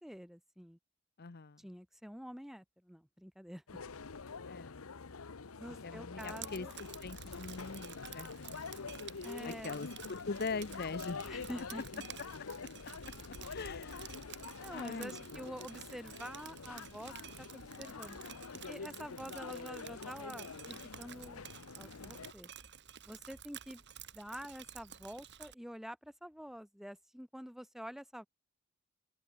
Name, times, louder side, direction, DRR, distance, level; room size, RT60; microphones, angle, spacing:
voice 1, 0.0-0.8 1.6-3.6 5.6-6.7 9.2-9.8 11.3-12.0 14.6-18.2 18.7-21.4 21.8-22.5 23.0-23.8 24.1-28.3, equal, ahead, 1.7 m, -47 dB
voice 2, 1.2-1.6 4.5-4.8 5.6-6.7 7.0-8.9 9.4-11.2 12.6-12.7 13.5-14.3 14.7-15.5, left 4 dB, 50° left, 0.8 m, -42 dB
sound 1, 3.7-22.3, left 4 dB, 85° left, 0.9 m, -46 dB
Drip, 6.2-25.5, right 10 dB, 55° right, 4.4 m, -52 dB
head